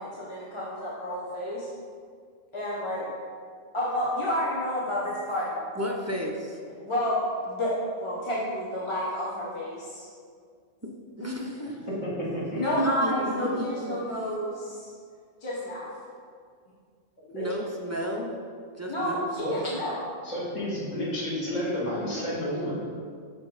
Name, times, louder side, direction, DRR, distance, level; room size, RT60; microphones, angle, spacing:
voice 1, 0.0-1.7 2.5-3.0 3.7-5.5 6.8-7.2 7.4-7.7 8.0-10.1 11.6-11.7 12.5-14.9 15.4-15.9 18.9-20.0, left 1 dB, 25° left, -7 dB, 1.0 m, -30 dB
voice 2, 5.8-6.6 11.2-11.6 12.8-14.0 17.3-18.3 18.8-19.3, equal, 25° right, -1 dB, 0.3 m, -32 dB
voice 3, 11.9-12.6 17.3-17.5 19.4-19.6 20.2-22.7, equal, 85° left, -8 dB, 2.4 m, -31 dB
6.0 x 5.1 x 4.8 m, 2.1 s
omnidirectional pair, 1.3 m